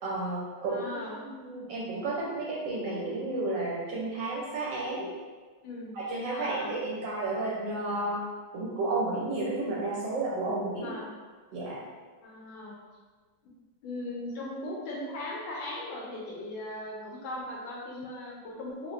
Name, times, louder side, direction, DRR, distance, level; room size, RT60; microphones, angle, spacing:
voice 1, 0.0-5.1 5.9-8.2 8.5-10.9 11.5-11.8, right 2 dB, 75° right, -5 dB, 1.2 m, -32 dB
voice 2, 0.6-1.2 5.6-5.9 6.3-6.7 10.8-11.1 12.2-12.8 13.4-13.5 13.8-18.9, left 1 dB, 80° left, -2 dB, 1.5 m, -38 dB
4.3 x 2.1 x 2.4 m, 1.4 s
omnidirectional pair, 2.1 m